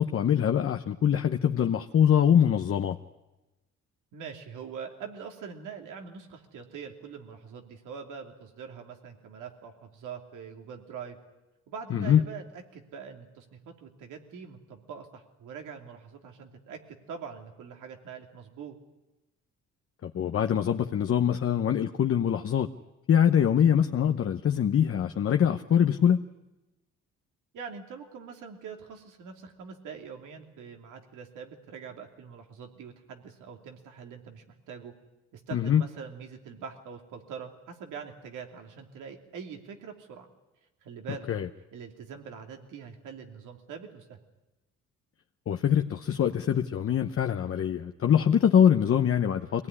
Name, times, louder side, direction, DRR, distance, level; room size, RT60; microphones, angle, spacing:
voice 1, 0.0-3.0 11.9-12.3 20.0-22.7 23.1-26.2 35.5-35.8 41.3-41.5 45.5-49.7, left 9 dB, 50° left, 6 dB, 0.9 m, -23 dB
voice 2, 4.1-11.2 11.7-18.8 27.5-34.9 35.3-40.3 40.8-41.3 41.7-44.2, right 6 dB, 85° right, 4 dB, 2.9 m, -43 dB
23.5 x 18.5 x 9.8 m, 1.0 s
cardioid pair, 90°, 30 cm